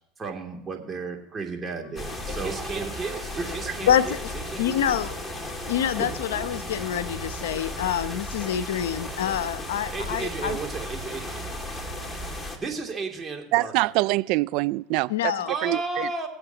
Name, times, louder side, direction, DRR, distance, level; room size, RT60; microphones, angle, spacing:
voice 1, 0.2-5.1 6.0-6.1 9.9-11.6 12.6-13.9 15.5-16.3, right 4 dB, 30° right, 2.7 m, -33 dB
Wind instrument woodwind instrument, 1.8-7.8, left 10 dB, 50° left, 0.9 m, -50 dB
sound 1, 2.0-12.6, left 1 dB, 15° left, 2.3 m, -35 dB
voice 2, 3.8-4.3 4.6-5.1 5.7-10.6 15.1-15.5, left 10 dB, 90° left, 0.7 m, -26 dB
voice 3, 13.5-15.3 15.6-16.3, right 21 dB, 65° right, 0.3 m, -25 dB
23.5 x 8.0 x 2.9 m
hypercardioid pair, 90°, 0 cm